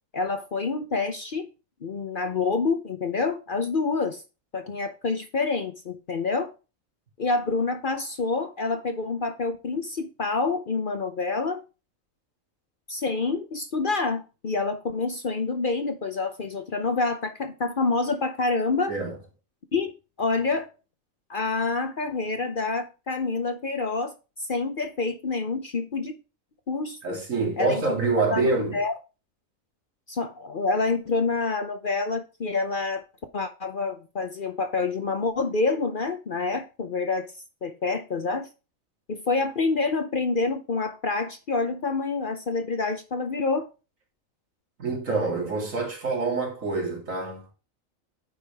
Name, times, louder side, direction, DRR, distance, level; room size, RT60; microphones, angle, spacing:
voice 1, 0.1-1.5 1.8-4.2 4.5-6.5 7.2-11.6 12.9-18.9 19.7-19.9 20.2-20.7 21.3-24.1 24.5-26.2 26.7-27.2 27.6-27.8 28.2-28.9 30.1-33.0 33.3-37.3 37.6-38.5 39.1-43.7, left 3 dB, 45° left, 0.8 m, -27 dB
voice 2, 27.0-28.8 44.8-47.5, right 3 dB, 70° right, 2.9 m, -26 dB
9.1 x 5.0 x 3.5 m
omnidirectional pair, 1.4 m